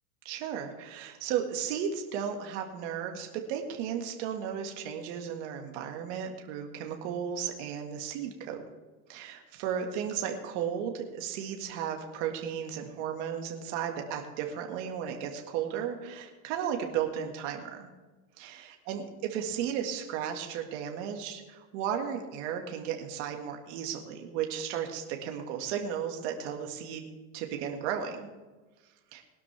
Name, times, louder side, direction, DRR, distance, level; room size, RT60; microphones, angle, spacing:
voice 1, 0.3-8.6 9.1-17.9 18.4-19.0 19.3-27.1 27.3-28.3 29.1-29.2, right 8 dB, 50° right, 3 dB, 1.9 m, -34 dB
19.5 x 12.0 x 3.4 m, 1.2 s
supercardioid pair, 145°, 44 cm